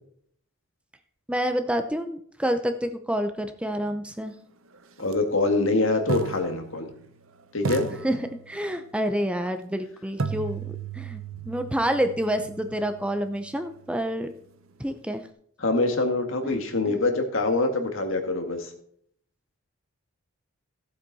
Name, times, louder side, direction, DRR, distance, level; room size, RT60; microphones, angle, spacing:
voice 1, 1.3-4.3 7.9-11.2 11.5-14.3 14.8-15.2 16.4-16.5 16.9-17.0, equal, 5° right, 8 dB, 0.6 m, -28 dB
voice 2, 5.0-6.9 7.5-7.9 15.6-18.7, left 2 dB, 65° left, 5 dB, 1.9 m, -24 dB
sound 1, 5.0-5.1 6.1-7.3 7.6-8.9 10.2-14.1, right 4 dB, 70° right, 0.9 m, -35 dB
15.0 x 8.2 x 4.1 m, 0.65 s
head